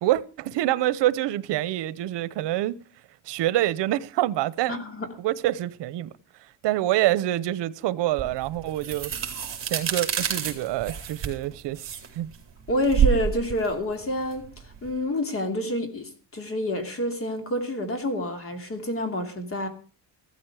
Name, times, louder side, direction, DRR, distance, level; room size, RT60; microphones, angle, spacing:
voice 1, 0.0-2.8 3.3-4.8 5.2-6.1 6.6-9.1 9.6-12.3, right 14 dB, 75° right, 1.0 m, -26 dB
voice 2, 4.7-5.1 12.7-14.5 14.8-19.7, left 1 dB, 30° left, 2.8 m, -28 dB
sound 1, 8.2-14.9, right 8 dB, 30° right, 3.8 m, -28 dB
15.5 x 14.0 x 4.8 m
cardioid pair, 160°, 42 cm